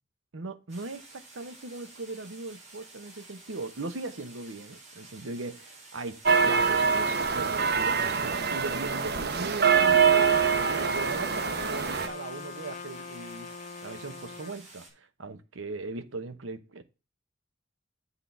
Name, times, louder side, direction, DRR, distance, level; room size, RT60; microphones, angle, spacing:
voice 1, 0.3-13.5 13.8-16.8, right 3 dB, 80° right, 0.9 m, -39 dB
sound 1, 0.7-14.9, right 3 dB, 35° right, 5.2 m, -51 dB
sound 2, 6.3-12.1, right 6 dB, 55° right, 0.8 m, -24 dB
Trumpet, 10.0-14.5, left 6 dB, 40° left, 0.6 m, -40 dB
8.3 x 3.8 x 6.9 m
head